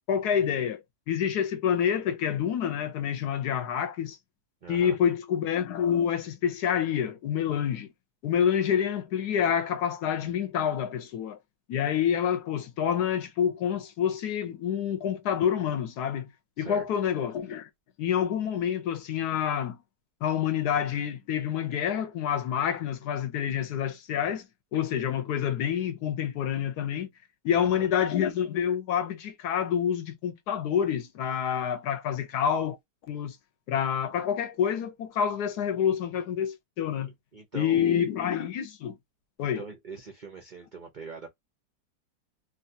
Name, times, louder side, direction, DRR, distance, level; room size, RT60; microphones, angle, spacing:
voice 1, 0.1-4.2 4.7-7.9 8.2-11.4 11.7-16.3 16.6-17.7 18.0-19.8 20.2-24.4 24.7-27.1 27.4-32.8 33.1-33.4 33.7-37.1 37.5-39.0 39.4-39.6, left 8 dB, 70° left, 1.2 m, -27 dB
voice 2, 4.6-5.0 16.6-16.9 27.5-27.9 37.3-38.0 39.4-41.3, right 5 dB, 60° right, 0.5 m, -42 dB
3.3 x 2.3 x 2.6 m
omnidirectional pair, 1.9 m